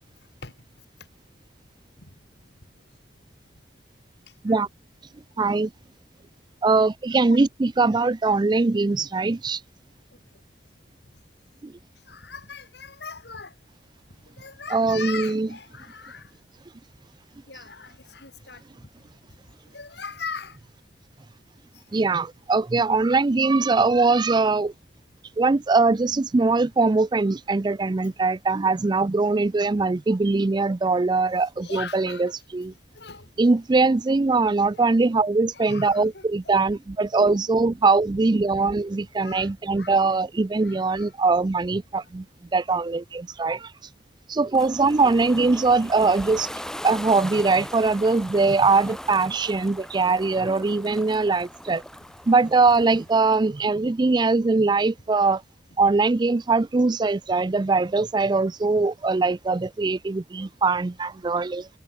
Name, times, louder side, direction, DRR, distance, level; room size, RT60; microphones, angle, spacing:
voice 1, 5.4-5.7 6.6-9.6 11.6-11.7 14.7-15.5 21.9-24.7 25.4-32.7 33.4-42.2 42.5-43.7 44.3-46.5 46.8-51.8 52.3-55.4 55.8-61.7, right 3 dB, 25° right, 0.4 m, -21 dB
voice 2, 12.1-13.5 14.4-16.2 17.5-18.6 19.7-20.6 31.6-32.3 33.0-33.3 34.7-34.9 35.5-36.6 37.2-37.4 39.2-39.5 39.8-40.0 40.6-41.1, left 5 dB, 65° left, 3.8 m, -39 dB
Ocean, 44.5-53.4, equal, 5° left, 2.1 m, -39 dB
head